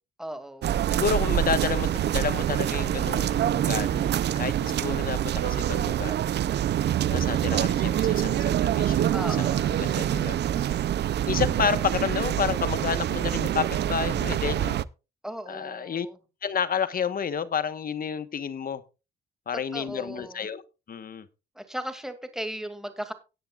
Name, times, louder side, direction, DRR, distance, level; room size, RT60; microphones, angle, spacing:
voice 1, 0.2-0.8 9.1-9.9 15.2-16.2 19.7-20.5 21.6-23.1, right 1 dB, ahead, 2.4 m, -37 dB
sound 1, 0.6-14.8, right 11 dB, 60° right, 0.6 m, -25 dB
voice 2, 0.9-6.1 7.1-10.7 11.3-14.8 15.5-16.1 16.4-18.8 19.5-20.6 20.9-21.3, left 7 dB, 45° left, 1.3 m, -30 dB
17.5 x 10.0 x 2.4 m
cardioid pair, 90°, 20 cm